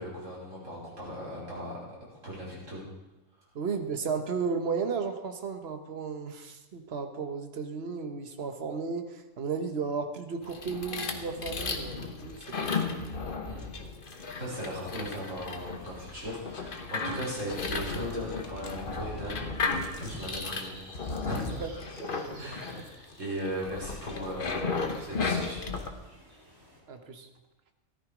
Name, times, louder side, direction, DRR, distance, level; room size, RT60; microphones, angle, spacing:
voice 1, 0.0-1.8 2.1-2.8 13.5-13.7 14.4-21.8 22.3-25.7, equal, 70° right, -6 dB, 5.7 m, -38 dB
voice 2, 3.5-13.0 21.5-21.7 22.0-22.5 26.9-27.3, right 5 dB, 55° right, 6 dB, 1.4 m, -34 dB
sound 1, 10.4-25.9, left 4 dB, 45° left, 1.3 m, -35 dB
sound 2, 14.1-26.8, equal, 15° right, 5.9 m, -50 dB
14.5 x 13.0 x 5.1 m, 1.0 s
omnidirectional pair, 1.3 m